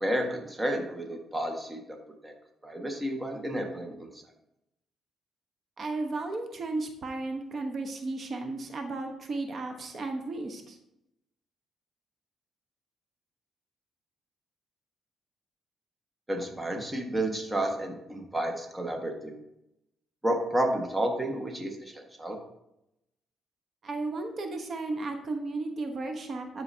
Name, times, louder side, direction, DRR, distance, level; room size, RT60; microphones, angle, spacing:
voice 1, 0.0-1.8 2.2-2.3 2.6-4.1 16.3-19.3 20.2-21.9 22.2-22.4, right 1 dB, 15° right, 2 dB, 1.6 m, -31 dB
voice 2, 5.8-10.8 23.8-26.6, right 2 dB, 45° right, 5 dB, 1.1 m, -34 dB
13.0 x 4.9 x 2.8 m, 0.83 s
cardioid pair, 90°, 0 cm